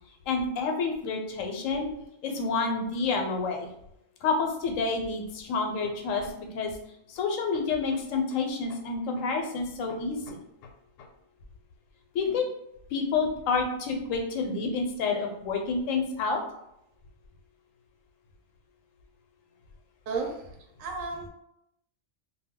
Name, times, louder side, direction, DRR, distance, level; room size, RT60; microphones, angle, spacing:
voice 1, 0.3-1.9 2.2-3.7 4.2-6.7 7.1-10.4 11.0-11.1 12.1-12.4 12.9-16.4, left 4 dB, 80° left, 3 dB, 0.9 m, -29 dB
voice 2, 20.8-21.3, right 4 dB, 85° right, 2 dB, 1.0 m, -32 dB
2.3 x 2.2 x 3.5 m, 0.81 s
omnidirectional pair, 1.3 m